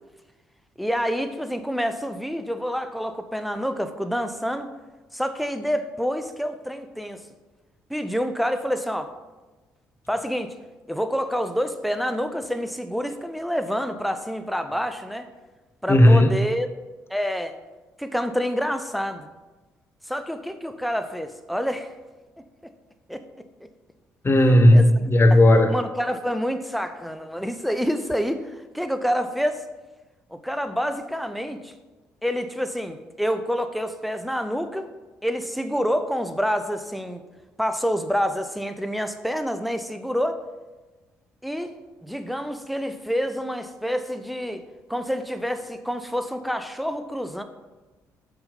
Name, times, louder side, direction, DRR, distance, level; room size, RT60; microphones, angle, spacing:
voice 1, 0.8-4.7 5.1-7.2 7.9-9.1 10.1-10.5 10.9-15.2 15.8-16.7 17.1-17.5 18.0-19.3 20.1-21.9 23.1-23.2 24.7-24.9 25.7-29.6 30.3-31.7 32.2-34.9 35.2-37.2 37.6-40.4 41.4-44.6 44.9-47.4, equal, ahead, 8 dB, 0.8 m, -27 dB
voice 2, 15.9-16.5 24.2-25.7, left 1 dB, 30° left, 6 dB, 1.1 m, -15 dB
7.0 x 5.6 x 5.3 m, 1.2 s
hypercardioid pair, 45°, 8 cm